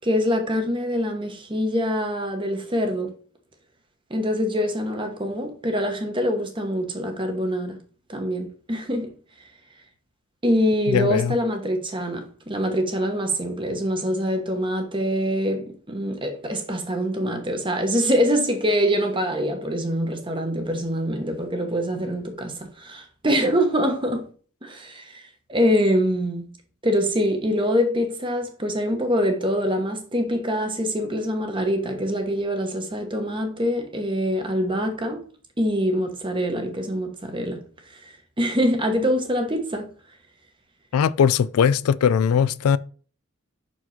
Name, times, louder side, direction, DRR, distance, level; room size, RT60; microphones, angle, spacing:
voice 1, 0.0-3.1 4.1-7.8 8.1-9.1 10.4-24.3 24.6-25.2 25.5-26.5 26.8-35.2 35.6-37.6 37.9-39.9, equal, 25° right, 1.1 m, -24 dB
voice 2, 10.9-11.4 40.9-42.8, left 7 dB, 85° left, 0.3 m, -20 dB
6.1 x 4.6 x 4.1 m
head